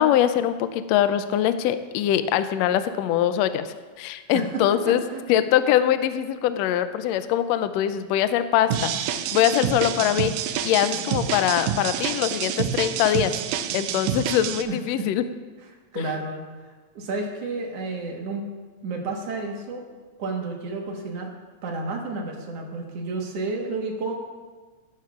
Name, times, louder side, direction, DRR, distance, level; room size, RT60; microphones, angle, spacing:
voice 1, 0.0-5.0 5.3-8.9 9.3-10.3 10.6-13.3 13.7-15.2, left 11 dB, 85° left, 11 dB, 1.5 m, -22 dB
voice 2, 4.3-5.3 14.6-15.1 15.9-16.7 17.0-18.4 18.8-19.8 20.2-21.3 21.6-24.1, right 3 dB, 60° right, 1 dB, 2.2 m, -31 dB
sound 1, 8.7-14.6, right 9 dB, 90° right, 2.1 m, -28 dB
15.0 x 12.0 x 2.4 m, 1.4 s
omnidirectional pair, 3.5 m